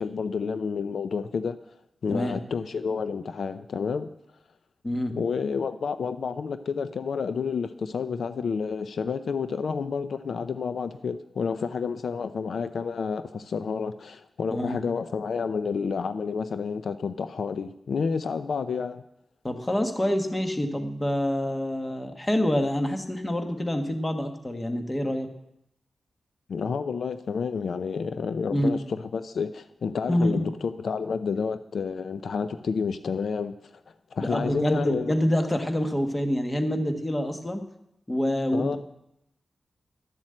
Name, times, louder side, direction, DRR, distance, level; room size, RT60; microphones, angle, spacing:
voice 1, 0.0-1.6 2.0-4.1 5.2-19.0 26.5-33.5 34.1-35.1 38.5-38.8, left 5 dB, 75° left, 11 dB, 0.5 m, -30 dB
voice 2, 19.4-25.3 28.5-28.7 30.1-30.5 34.2-37.6 38.1-38.8, left 1 dB, 15° left, 5 dB, 1.3 m, -26 dB
12.0 x 7.5 x 7.7 m, 0.82 s
wide cardioid pair, 130°, 0 cm